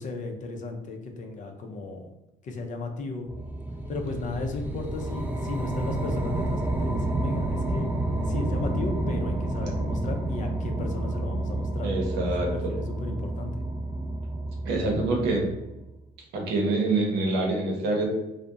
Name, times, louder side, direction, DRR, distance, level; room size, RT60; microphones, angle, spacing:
voice 1, 0.0-2.1 2.4-3.3 3.9-11.9 12.5-13.5, left 3 dB, 50° left, 4 dB, 0.5 m, -35 dB
sound 1, 3.3-15.8, right 2 dB, 10° right, 0.4 m, -30 dB
voice 2, 11.8-12.7 14.7-15.5 16.3-18.0, right 2 dB, 80° right, 0 dB, 0.7 m, -26 dB
2.6 x 2.0 x 2.3 m, 0.96 s
supercardioid pair, 75°, 17 cm